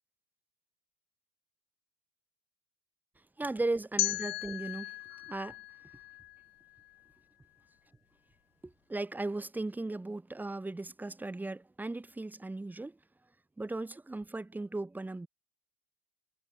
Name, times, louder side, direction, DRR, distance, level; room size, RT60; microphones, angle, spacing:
voice 1, 3.4-5.6 8.6-13.0 13.6-15.3, right 2 dB, 5° right, 1.1 m, -37 dB
sound 1, 4.0-6.9, left 20 dB, 80° left, 1.3 m, -36 dB
supercardioid pair, 130°, 29 cm